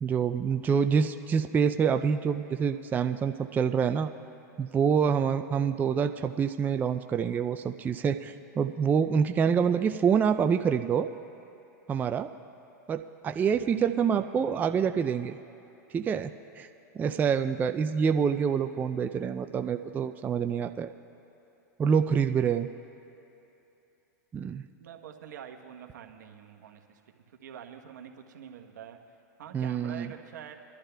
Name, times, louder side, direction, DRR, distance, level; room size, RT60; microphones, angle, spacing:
voice 1, 0.0-4.1 4.6-11.1 11.9-12.3 12.9-15.4 15.9-16.7 16.9-20.9 21.8-22.7 24.3-24.6 29.5-30.1, right 7 dB, 20° right, 7 dB, 0.3 m, -26 dB
voice 2, 24.8-27.0 27.3-30.5, right 8 dB, 80° right, 4 dB, 1.0 m, -46 dB
24.0 x 11.5 x 2.2 m, 2.8 s
hypercardioid pair, 115°, 10 cm